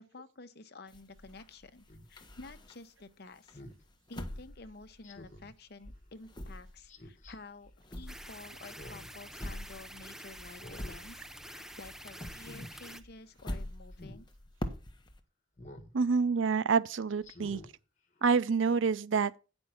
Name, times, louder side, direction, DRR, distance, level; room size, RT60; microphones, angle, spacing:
voice 1, 0.0-3.6 4.1-14.3, left 3 dB, 55° left, 0.8 m, -51 dB
sound 1, 0.9-3.0 3.5-5.6 5.8-11.5 11.8-15.2, left 1 dB, 25° left, 1.1 m, -44 dB
Speech synthesizer, 1.9-2.1 3.5-3.8 5.0-5.5 6.9-7.3 8.6-9.2 9.6-9.7 10.5-11.0 11.4-11.7 12.3-12.7 13.9-14.2 15.6-15.9 16.4-16.5 17.2-17.7 18.2-18.3, left 1 dB, 40° left, 1.5 m, -49 dB
sound 2, 8.1-13.0, equal, ahead, 0.6 m, -48 dB
voice 2, 15.9-17.6 18.2-19.4, right 5 dB, 85° right, 0.5 m, -27 dB
9.8 x 5.3 x 6.0 m
head